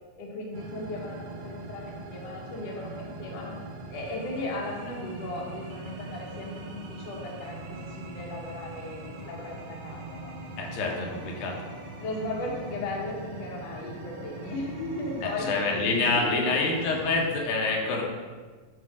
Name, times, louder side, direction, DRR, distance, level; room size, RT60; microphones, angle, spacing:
voice 1, 0.2-3.5 3.9-10.3 10.8-11.0 12.0-15.6 16.1-16.6, left 2 dB, 65° left, -2 dB, 1.7 m, -36 dB
sound 1, 0.5-17.3, right 2 dB, 90° right, 2.7 m, -41 dB
voice 2, 10.6-11.6 15.2-18.0, left 3 dB, 80° left, 0 dB, 2.6 m, -27 dB
8.1 x 2.8 x 4.7 m, 1.4 s
omnidirectional pair, 4.1 m